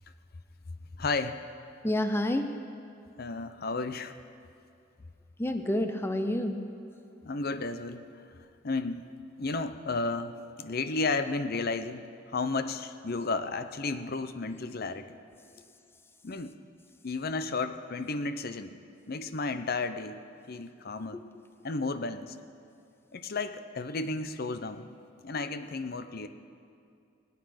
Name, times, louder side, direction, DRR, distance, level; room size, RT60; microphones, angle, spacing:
voice 1, 1.0-1.4 3.2-4.1 7.2-8.0 8.6-9.1 9.4-15.1 16.2-16.6 17.0-18.8 19.1-20.2 20.5-21.2 21.6-22.4 23.1-24.9 25.2-26.3, left 3 dB, 50° left, 10 dB, 0.7 m, -33 dB
voice 2, 1.8-2.6 5.4-6.6 21.1-21.2, left 1 dB, 10° left, 7 dB, 0.6 m, -28 dB
22.5 x 8.4 x 5.9 m, 2.4 s
head